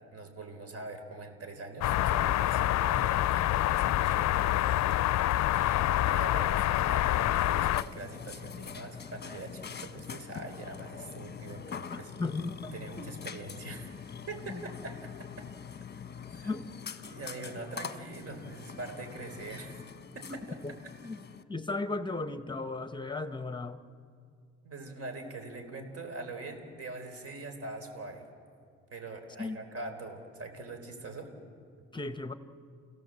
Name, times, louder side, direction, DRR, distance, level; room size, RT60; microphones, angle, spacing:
voice 1, 0.1-5.1 5.5-12.1 12.7-13.9 14.3-15.1 15.4-15.5 16.3-16.5 17.0-19.8 20.1-20.6 24.6-28.3 28.9-31.3, right 2 dB, 50° right, 6 dB, 4.2 m, -43 dB
sound 1, 1.8-7.8, left 14 dB, 65° left, 0.5 m, -26 dB
Burping eructation, 7.0-21.4, left 7 dB, 35° left, 1.1 m, -44 dB
voice 2, 12.2-13.1 14.5-14.6 16.4-16.7 20.6-20.7 21.0-21.2 21.5-23.8 29.4-29.6 31.9-32.3, left 3 dB, 15° left, 10 dB, 1.2 m, -35 dB
30.0 x 17.0 x 7.7 m, 2.2 s
cardioid pair, 90°, 30 cm